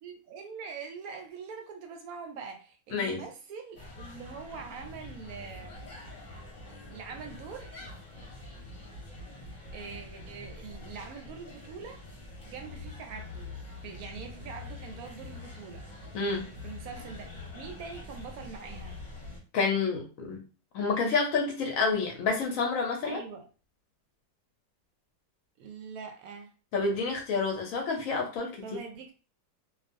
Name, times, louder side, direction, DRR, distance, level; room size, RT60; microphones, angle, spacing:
voice 1, 0.0-5.8 6.9-7.7 9.7-12.0 12.4-13.5 13.8-15.8 16.6-19.0 23.0-23.5 25.6-26.5 28.6-29.1, right 5 dB, 75° right, 1.0 m, -43 dB
voice 2, 2.9-3.2 16.1-16.5 19.5-20.4 20.7-23.2 26.7-28.6, left 4 dB, 70° left, 0.9 m, -29 dB
sound 1, 3.7-19.4, left 2 dB, 40° left, 0.8 m, -45 dB
2.4 x 2.3 x 2.5 m
omnidirectional pair, 1.7 m